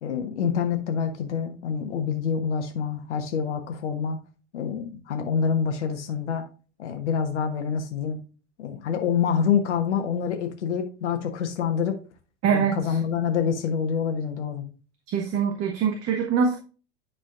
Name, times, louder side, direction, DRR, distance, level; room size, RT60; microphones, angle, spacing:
voice 1, 0.0-4.2 4.5-6.4 6.8-8.2 8.6-12.0 12.5-14.6, left 7 dB, 75° left, 4 dB, 1.3 m, -26 dB
voice 2, 12.4-13.0 15.1-16.6, right 6 dB, 45° right, 2 dB, 1.4 m, -24 dB
10.0 x 5.0 x 2.5 m, 0.35 s
hypercardioid pair, 85°, 35 cm